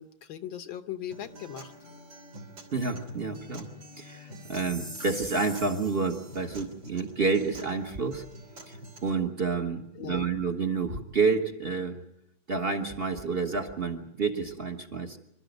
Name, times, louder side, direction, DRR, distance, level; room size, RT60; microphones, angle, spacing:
voice 1, 0.0-1.7 10.0-10.3, left 10 dB, 75° left, 9 dB, 1.8 m, -39 dB
Acoustic guitar, 1.1-9.1, equal, 65° right, 3.8 m, -47 dB
voice 2, 2.7-3.7 4.0-8.2 8.7-8.8 9.0-12.0 12.5-15.2, right 4 dB, 35° right, 5 dB, 1.3 m, -29 dB
Chime, 4.4-6.4, right 1 dB, 15° right, 1.0 m, -43 dB
26.0 x 12.5 x 9.3 m, 0.83 s
omnidirectional pair, 2.2 m